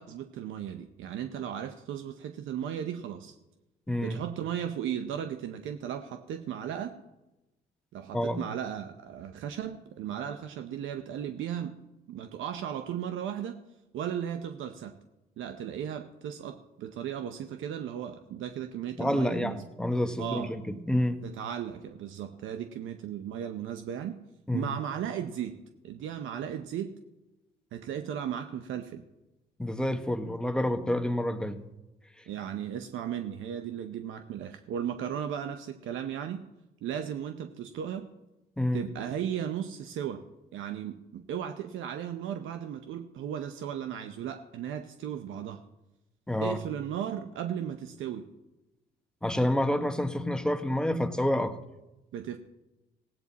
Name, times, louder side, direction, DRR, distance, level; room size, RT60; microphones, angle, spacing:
voice 1, 0.0-3.3 4.0-6.9 7.9-11.8 12.1-13.6 13.9-15.0 15.4-19.6 20.2-20.5 21.2-24.2 24.5-25.6 25.8-26.9 27.7-29.0 32.3-36.4 36.8-38.1 38.7-40.2 40.5-45.6 46.4-48.3 52.1-52.4, right 9 dB, 85° right, 7 dB, 0.8 m, -36 dB
voice 2, 3.9-4.2 8.1-8.4 19.0-21.2 24.5-24.7 29.6-31.6 38.6-38.8 46.3-46.6 49.2-51.5, left 1 dB, 5° left, 7 dB, 1.1 m, -28 dB
16.5 x 8.8 x 4.1 m, 0.99 s
cardioid pair, 90°, 20 cm